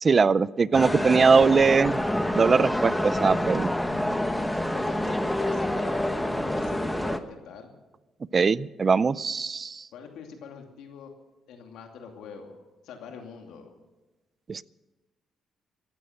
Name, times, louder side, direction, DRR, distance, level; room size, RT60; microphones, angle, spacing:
voice 1, 0.0-2.0 2.3-3.7 8.3-9.8 14.5-14.6, right 5 dB, 35° right, 20 dB, 0.4 m, -21 dB
sound 1, 0.7-7.2, left 1 dB, 5° left, 1.1 m, -27 dB
voice 2, 4.5-7.8 9.9-11.1 11.5-13.7, left 6 dB, 85° left, 3 dB, 2.6 m, -44 dB
15.0 x 11.5 x 8.0 m, 1.1 s
cardioid pair, 90°, 0 cm